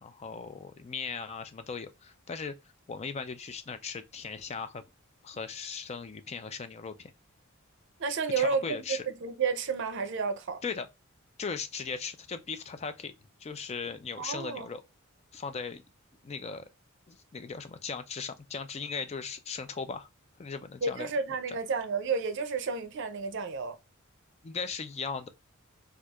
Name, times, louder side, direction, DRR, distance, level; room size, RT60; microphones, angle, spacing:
voice 1, 0.0-2.5 2.9-4.8 5.2-7.1 8.4-9.1 10.6-10.9 11.4-13.1 13.4-14.8 15.3-15.8 16.2-16.7 17.1-20.1 20.4-21.1 24.4-25.3, left 5 dB, 30° left, 0.4 m, -38 dB
voice 2, 8.0-8.8 9.2-10.6 14.2-14.7 20.8-23.7, right 5 dB, 60° right, 0.5 m, -31 dB
4.4 x 2.4 x 2.3 m
head